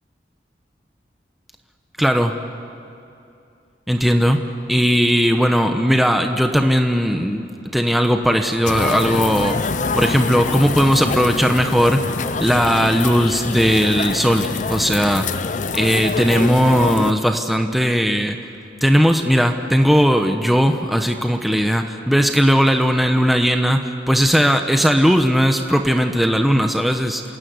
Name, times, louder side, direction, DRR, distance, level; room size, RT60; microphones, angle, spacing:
voice 1, 2.0-2.4 3.9-4.4 4.7-7.5 7.7-9.6 9.9-12.1 12.4-15.3 15.7-18.4 18.8-27.2, equal, ahead, 5 dB, 1.0 m, -17 dB
sound 1, 8.7-17.1, left 4 dB, 45° left, 0.6 m, -25 dB
27.5 x 16.5 x 9.6 m, 2.6 s
head